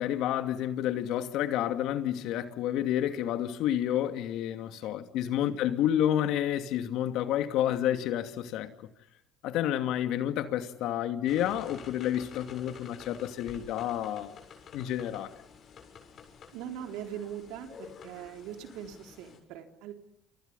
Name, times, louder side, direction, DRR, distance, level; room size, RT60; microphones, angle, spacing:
voice 1, 0.0-8.7 9.4-14.3 14.7-15.3, left 11 dB, 75° left, 2.6 m, -30 dB
sound 1, 11.3-19.4, left 6 dB, 55° left, 7.8 m, -50 dB
voice 2, 16.5-19.9, right 9 dB, 80° right, 4.1 m, -41 dB
29.0 x 28.5 x 5.7 m
supercardioid pair, 75°, 0 cm